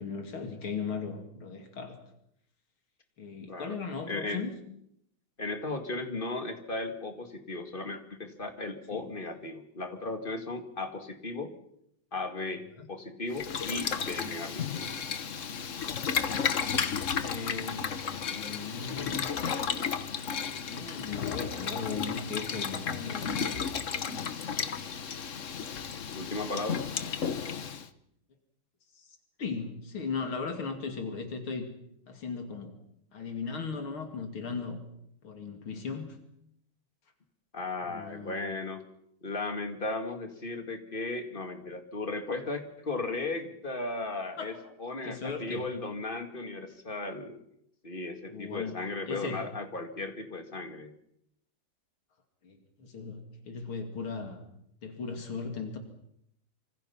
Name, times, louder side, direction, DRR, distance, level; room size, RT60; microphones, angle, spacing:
voice 1, 0.0-2.0 3.2-4.5 8.9-9.1 12.8-12.9 16.5-16.9 17.2-17.9 18.3-19.3 20.5-23.6 28.9-31.7 32.1-32.7 33.1-34.8 35.2-36.2 37.9-38.4 44.4-44.6 45.0-45.7 48.3-48.8 49.1-49.5 52.4-54.4 54.8-55.8, left 5 dB, 85° left, 5 dB, 3.5 m, -37 dB
voice 2, 3.5-3.8 4.1-4.5 5.4-11.5 12.1-14.9 26.1-26.8 37.5-38.8 39.2-44.5 44.8-47.4 47.8-50.9, left 2 dB, 25° left, 6 dB, 2.2 m, -36 dB
Boiling, 13.3-27.9, left 6 dB, 45° left, 1.2 m, -33 dB
26.0 x 25.0 x 5.8 m, 0.75 s
omnidirectional pair, 2.2 m